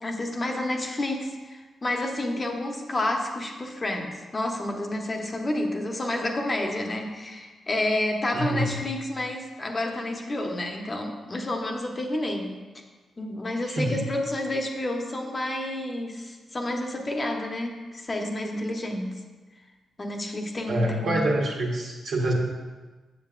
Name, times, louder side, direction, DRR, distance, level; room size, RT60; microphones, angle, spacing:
voice 1, 0.0-12.5 13.2-19.2 20.0-21.2, left 1 dB, 35° left, 2 dB, 1.0 m, -30 dB
voice 2, 8.3-8.7 13.7-14.0 20.7-22.3, right 1 dB, 75° right, -4 dB, 1.5 m, -26 dB
7.7 x 6.9 x 2.5 m, 1.3 s
cardioid pair, 60°, 0 cm